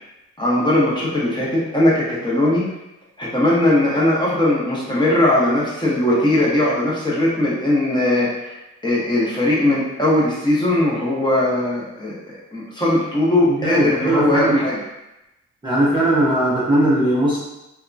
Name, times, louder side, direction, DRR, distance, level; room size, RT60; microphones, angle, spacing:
voice 1, 0.4-2.6 3.2-8.5 8.8-14.8, left 1 dB, 15° left, -6 dB, 0.9 m, -19 dB
voice 2, 13.5-14.6 15.6-17.4, right 1 dB, 15° right, -8 dB, 0.7 m, -18 dB
2.7 x 2.3 x 2.5 m, 0.94 s
cardioid pair, 90°, 30 cm